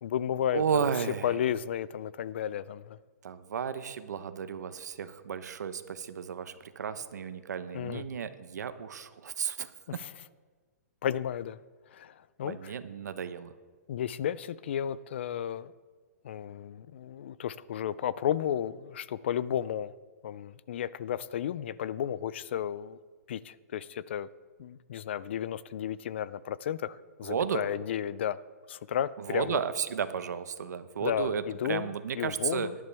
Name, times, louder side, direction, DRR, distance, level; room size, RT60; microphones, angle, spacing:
voice 1, 0.0-0.9 1.2-3.0 7.7-8.0 10.0-10.1 11.0-11.6 11.9-12.1 12.4-12.7 13.9-15.7 16.2-19.9 20.2-23.0 23.3-24.3 24.6-28.4 28.7-29.6 31.0-31.9 32.2-32.7, left 10 dB, 40° left, 18 dB, 0.4 m, -33 dB
voice 2, 0.5-1.3 3.2-10.0 12.4-13.5 27.2-27.6 29.2-32.7, right 7 dB, 80° right, 11 dB, 1.0 m, -33 dB
18.5 x 11.0 x 3.4 m, 1.4 s
hypercardioid pair, 175°, 9 cm